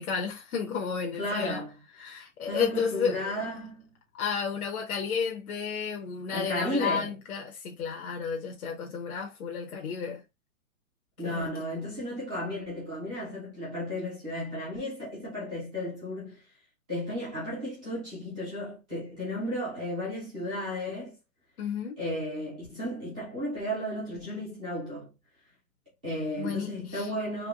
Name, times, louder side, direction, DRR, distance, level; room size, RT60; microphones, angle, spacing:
voice 1, 0.0-1.6 2.0-3.4 4.1-10.2 11.2-11.5 21.6-22.0 26.4-27.1, left 6 dB, 90° left, 0.9 m, -32 dB
voice 2, 1.2-1.7 2.5-3.8 6.3-7.1 11.2-16.4 16.9-21.2 22.0-25.1 26.0-27.5, left 1 dB, 5° right, 0.3 m, -34 dB
3.4 x 2.7 x 2.4 m
hypercardioid pair, 155°, 42 cm